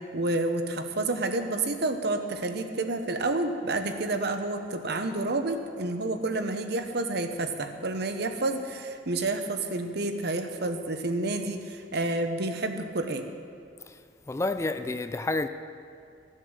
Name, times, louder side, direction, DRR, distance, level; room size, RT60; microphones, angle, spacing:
voice 1, 0.1-13.2, right 2 dB, 60° right, 0.9 m, -29 dB
voice 2, 14.3-15.5, left 2 dB, 15° left, 0.4 m, -29 dB
14.5 x 7.5 x 6.5 m
head